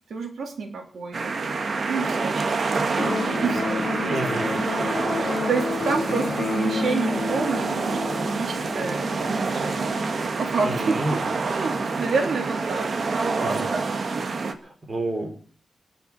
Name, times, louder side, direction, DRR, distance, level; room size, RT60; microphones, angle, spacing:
voice 1, 0.1-4.7 5.0-13.9, right 4 dB, 85° right, 3 dB, 3.5 m, -30 dB
sound 1, 1.1-14.5, right 4 dB, 50° right, 1.6 m, -27 dB
Electric guitar, 2.9-10.9, left 5 dB, 50° left, 1.0 m, -31 dB
voice 2, 4.1-4.4 10.6-11.1 13.4-13.6 14.6-15.3, right 2 dB, 35° right, 4 dB, 4.6 m, -29 dB
20.5 x 7.1 x 7.4 m, 0.42 s
wide cardioid pair, 165°, 0 cm